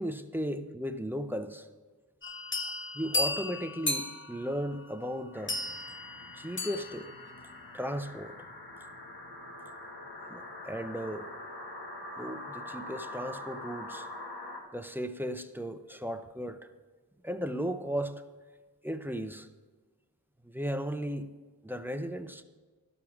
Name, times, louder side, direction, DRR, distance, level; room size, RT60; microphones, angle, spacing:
voice 1, 0.0-1.7 2.9-5.6 6.3-7.1 7.7-8.5 10.3-11.3 12.2-14.1 14.7-16.7 17.2-18.2 18.8-19.5 20.4-21.3 21.6-22.4, equal, 5° right, 8 dB, 0.5 m, -36 dB
sound 1, 2.2-7.3, left 2 dB, 30° left, 0.9 m, -35 dB
sound 2, 5.3-14.6, left 1 dB, 75° left, 1.6 m, -44 dB
12.0 x 6.1 x 6.0 m, 1.3 s
wide cardioid pair, 95°, 38 cm